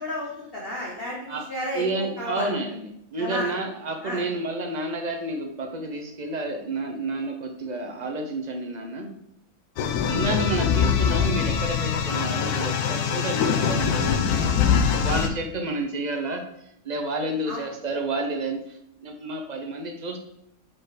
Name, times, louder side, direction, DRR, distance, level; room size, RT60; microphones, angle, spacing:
voice 1, 0.0-2.5 3.2-3.5 4.0-4.2 17.5-17.6, left 1 dB, 40° left, -4 dB, 1.2 m, -32 dB
voice 2, 1.7-9.1 10.1-16.4 16.8-20.2, right 2 dB, 40° right, 4 dB, 0.6 m, -30 dB
sound 1, 9.8-15.3, left 7 dB, 80° left, 1.1 m, -23 dB
4.5 x 4.5 x 4.8 m, 0.74 s
omnidirectional pair, 1.7 m